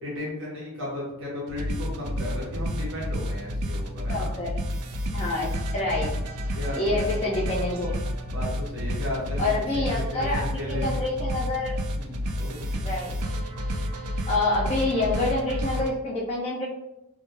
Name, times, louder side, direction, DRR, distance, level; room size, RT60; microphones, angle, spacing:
voice 1, 0.0-4.3 6.5-7.1 8.3-11.0 11.9-12.7, left 1 dB, 55° right, -5 dB, 1.0 m, -34 dB
sound 1, 1.5-15.9, equal, 85° right, 0.3 m, -30 dB
voice 2, 4.1-4.6 5.1-6.1 6.7-7.9 9.4-11.8 12.8-13.1 14.3-16.7, left 2 dB, 25° left, -6 dB, 0.3 m, -27 dB
2.2 x 2.1 x 3.0 m, 0.91 s
head